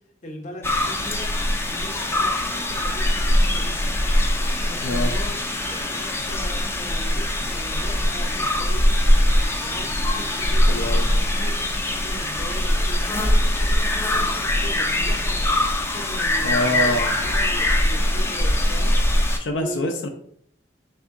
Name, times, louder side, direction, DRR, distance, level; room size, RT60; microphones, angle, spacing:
voice 1, 0.2-1.3 1.7-4.0 4.6-5.3 5.6-8.9 9.6-11.7 12.0-13.4 14.1-15.5 15.8-18.9 19.3-19.9, equal, 45° left, 2 dB, 0.7 m, -39 dB
sound 1, 0.6-19.4, left 1 dB, 15° left, 0.3 m, -22 dB
voice 2, 4.8-5.1 10.7-11.1 16.4-17.1 19.4-20.1, left 1 dB, 80° left, 3 dB, 0.4 m, -25 dB
3.5 x 2.7 x 3.6 m, 0.65 s
head